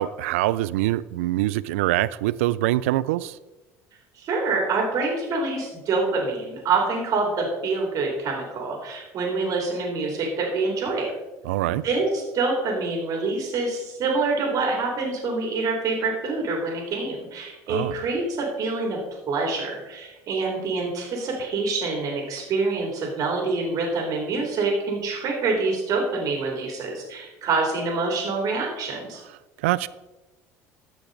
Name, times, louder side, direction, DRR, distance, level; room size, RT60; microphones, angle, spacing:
voice 1, 0.0-3.4 11.4-11.8 17.7-18.0 29.6-29.9, right 15 dB, 85° right, 0.3 m, -24 dB
voice 2, 4.2-11.1 11.7-19.0 19.3-29.2, right 3 dB, 55° right, 3.0 m, -26 dB
14.5 x 5.9 x 3.9 m
supercardioid pair, 80°, 7 cm